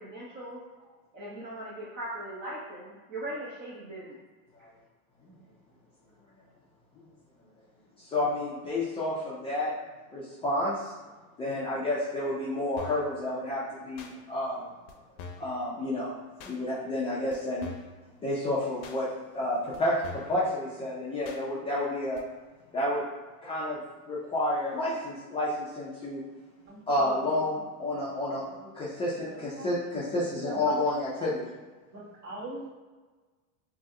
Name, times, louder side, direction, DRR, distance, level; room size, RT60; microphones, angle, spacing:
voice 1, 0.0-4.2 4.6-4.7, right 1 dB, 25° right, -6 dB, 0.7 m, -40 dB
voice 2, 8.1-9.7 10.1-10.9 11.4-14.6 15.4-16.1 16.4-17.7 18.2-19.1 19.3-20.0 20.3-22.2 22.7-23.0 23.4-23.8 24.1-26.2 26.9-28.4 28.7-31.5, left 1 dB, 15° left, -9 dB, 0.3 m, -30 dB
sound 1, 12.8-13.1 14.0-14.1 14.9-15.0 15.2-15.5 16.4-16.6 17.3-17.4 17.6-18.0 18.8-19.0 19.7-19.8 20.0-20.4 21.2-21.4 22.2-22.3, left 4 dB, 75° left, 0.6 m, -43 dB
voice 3, 31.9-32.7, right 2 dB, 45° right, -6 dB, 1.3 m, -39 dB
2.7 x 2.0 x 3.6 m, 1.3 s
supercardioid pair, 125°, 43 cm